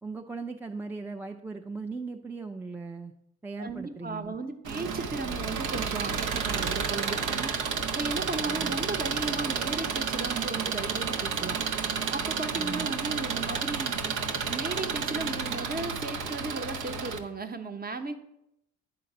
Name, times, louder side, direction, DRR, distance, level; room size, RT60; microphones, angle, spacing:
voice 1, 0.0-3.1 3.4-4.4 8.5-8.8 12.6-12.9, right 4 dB, 5° right, 3 dB, 0.4 m, -38 dB
voice 2, 3.6-7.5 7.9-11.6 12.1-14.1 14.5-18.2, right 3 dB, 30° right, 7 dB, 1.0 m, -35 dB
Engine, 4.6-17.2, right 6 dB, 85° right, 0.9 m, -31 dB
10.0 x 3.9 x 6.7 m, 0.82 s
cardioid pair, 90°, 30 cm